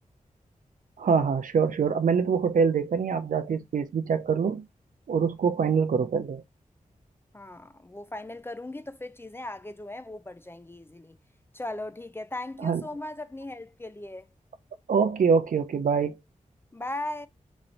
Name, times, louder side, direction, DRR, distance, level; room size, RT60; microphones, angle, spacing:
voice 1, 1.0-4.6 5.1-6.4 12.6-12.8 14.9-16.2, right 6 dB, 70° right, 0.5 m, -24 dB
voice 2, 7.3-11.2 11.5-14.3 16.7-17.3, left 2 dB, 15° left, 0.3 m, -38 dB
3.1 x 2.6 x 4.2 m
cardioid pair, 65°, 14 cm